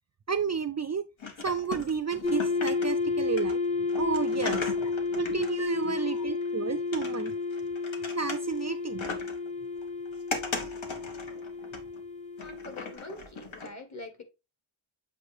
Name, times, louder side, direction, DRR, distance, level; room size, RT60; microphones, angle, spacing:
voice 1, 0.3-1.0 1.4-4.7 5.1-7.3 8.2-9.0, right 6 dB, 35° right, 0.4 m, -32 dB
sound 1, 1.2-3.1 3.4-6.5 6.9-8.7 9.0-9.5 9.8-12.0 12.4-13.7, left 4 dB, 70° left, 1.6 m, -38 dB
sound 2, 2.2-12.9, left 4 dB, 15° left, 0.6 m, -31 dB
voice 2, 5.9-6.2 12.4-14.2, left 2 dB, 35° left, 1.5 m, -44 dB
7.9 x 2.7 x 4.8 m
wide cardioid pair, 130°, 48 cm